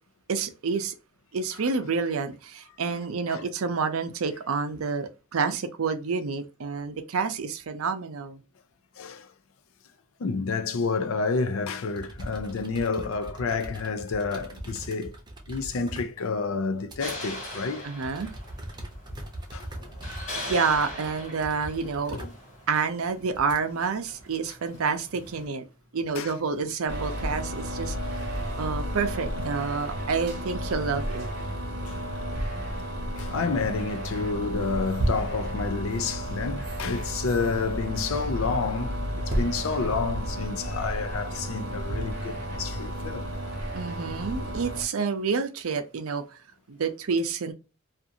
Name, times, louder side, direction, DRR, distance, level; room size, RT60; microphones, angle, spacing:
voice 1, 0.3-0.9 1.3-8.4 17.8-18.3 20.4-22.2 22.7-25.6 25.9-28.3 28.6-31.3 43.7-46.4 46.7-47.5, right 5 dB, 85° right, 0.5 m, -29 dB
voice 2, 9.0-9.3 10.2-15.2 15.5-17.9 19.5-19.7 22.1-22.3 26.2-26.3 31.9-32.0 33.2-43.3, left 4 dB, 75° left, 0.5 m, -29 dB
sound 1, 11.6-11.7 11.9-17.2 17.6-23.6 24.1-24.7 25.9-27.4, right 1 dB, 20° right, 0.6 m, -41 dB
sound 2, 17.0-25.5, left 1 dB, 35° left, 1.3 m, -41 dB
sound 3, 26.9-44.8, equal, 50° right, 0.8 m, -32 dB
2.5 x 2.5 x 2.7 m
head